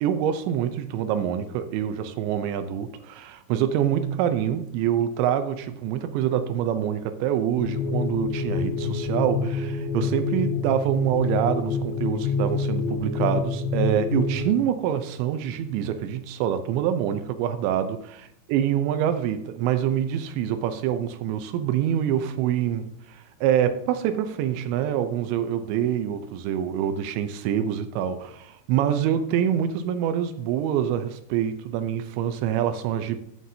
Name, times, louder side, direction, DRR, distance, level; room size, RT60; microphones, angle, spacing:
voice 1, 0.0-18.2 18.5-33.2, right 10 dB, 80° right, 10 dB, 2.7 m, -26 dB
sound 1, 7.6-14.4, left 4 dB, 85° left, 4.1 m, -27 dB
14.5 x 7.6 x 2.7 m, 0.71 s
omnidirectional pair, 5.5 m